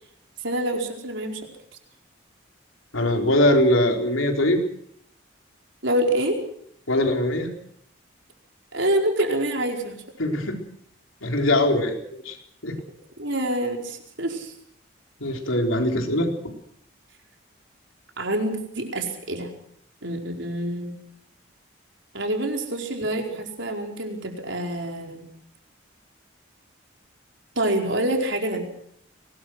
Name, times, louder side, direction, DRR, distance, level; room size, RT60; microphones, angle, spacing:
voice 1, 0.4-1.4 5.8-6.4 8.7-10.0 13.2-14.5 18.2-19.5 20.0-21.0 22.1-25.3 27.5-28.7, right 1 dB, 70° right, 2 dB, 4.8 m, -26 dB
voice 2, 2.9-4.6 6.9-7.5 10.2-10.6 11.2-12.4 12.6-12.8 15.2-16.5, left 1 dB, 85° left, 3 dB, 4.3 m, -22 dB
23.0 x 20.0 x 6.4 m, 0.69 s
head